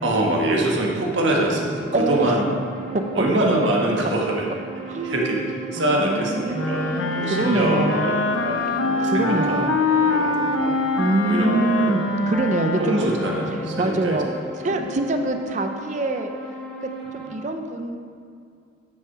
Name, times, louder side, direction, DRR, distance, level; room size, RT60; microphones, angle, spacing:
voice 1, 0.0-2.5 3.1-4.5 5.0-5.4 5.7-8.2 8.4-10.7 11.2-11.9 12.8-14.2 14.7-14.8 17.2-17.3, right 1 dB, 80° right, -1 dB, 1.4 m, -24 dB
sound 1, 1.0-17.3, right 3 dB, 5° left, 1.0 m, -37 dB
voice 2, 1.9-2.4 2.9-3.0 4.9-5.2 5.8-8.1 9.0-9.8 11.0-13.1 13.5-16.3 16.8-18.0, right 2 dB, 40° right, 6 dB, 0.5 m, -25 dB
Wind instrument woodwind instrument, 6.5-13.8, left 2 dB, 85° left, 0.7 m, -24 dB
9.4 x 5.8 x 4.7 m, 2.3 s
head